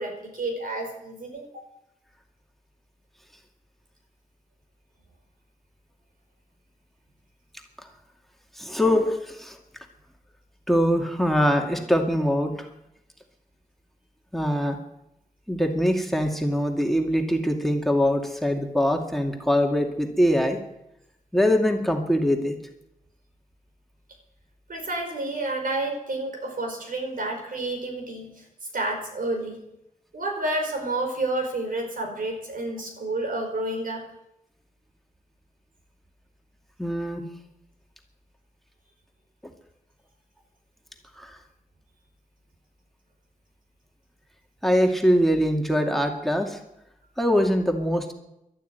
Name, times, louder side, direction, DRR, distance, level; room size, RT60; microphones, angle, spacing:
voice 1, 0.0-1.7 24.7-28.4 28.7-29.6 30.1-34.1, right 2 dB, 80° right, 3 dB, 4.9 m, -30 dB
voice 2, 8.6-9.6 10.7-12.7 14.3-14.8 15.5-20.6 21.3-22.6 36.8-37.2 41.2-41.4 44.6-46.6 47.2-48.1, equal, ahead, 3 dB, 2.3 m, -23 dB
12.5 x 12.0 x 9.4 m, 0.84 s
wide cardioid pair, 95°, 14 cm